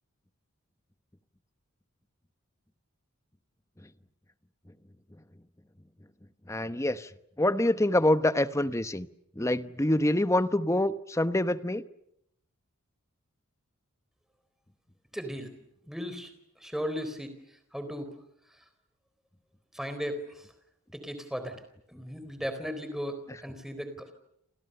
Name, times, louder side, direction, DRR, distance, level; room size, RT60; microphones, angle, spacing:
voice 1, 6.5-7.1 7.4-9.1 9.4-11.8, left 1 dB, 15° left, 12 dB, 1.0 m, -26 dB
voice 2, 15.1-15.5 15.8-18.2 18.5-18.7 19.7-20.5 20.9-21.6 21.9-24.1, equal, ahead, 9 dB, 4.0 m, -37 dB
30.0 x 27.0 x 6.9 m, 0.77 s
head